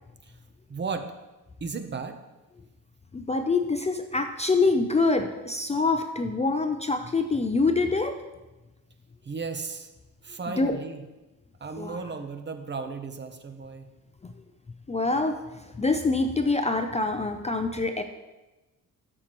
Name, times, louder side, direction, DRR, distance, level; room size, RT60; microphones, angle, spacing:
voice 1, 0.7-1.1 1.6-2.2 9.2-9.9 10.2-11.0 11.6-13.9, right 4 dB, 30° right, 7 dB, 0.7 m, -35 dB
voice 2, 3.1-8.2 10.6-10.8 11.8-12.0 14.9-18.0, left 3 dB, 20° left, 6 dB, 0.4 m, -25 dB
13.0 x 6.6 x 3.0 m, 1.1 s
wide cardioid pair, 135°, 35 cm